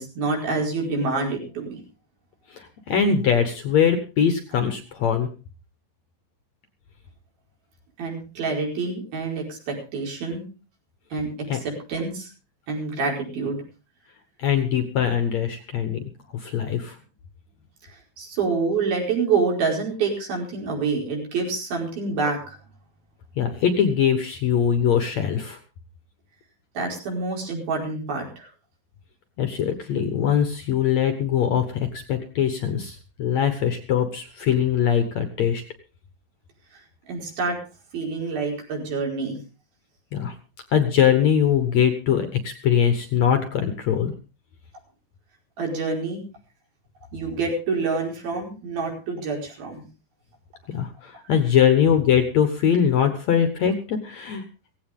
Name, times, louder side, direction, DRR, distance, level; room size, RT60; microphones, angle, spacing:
voice 1, 0.0-1.8 8.0-10.4 11.1-12.3 12.7-13.6 18.2-22.6 26.8-28.5 37.1-37.6 37.9-39.4 45.6-46.2 47.1-49.8, right 4 dB, 70° right, 0 dB, 6.7 m, -27 dB
voice 2, 2.5-5.3 11.5-11.6 14.4-16.0 16.3-17.0 23.4-25.6 29.4-35.6 40.1-40.3 40.7-44.1 50.7-54.4, left 8 dB, 60° left, 8 dB, 2.0 m, -22 dB
17.0 x 15.5 x 3.7 m, 0.34 s
omnidirectional pair, 4.4 m